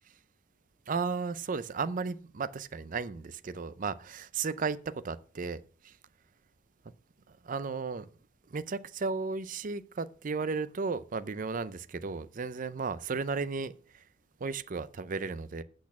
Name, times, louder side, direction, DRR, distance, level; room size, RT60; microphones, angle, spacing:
voice 1, 0.9-6.0 7.4-8.1 8.5-14.0 14.4-15.6, right 4 dB, 40° right, 0.5 m, -34 dB
8.5 x 6.3 x 5.8 m
head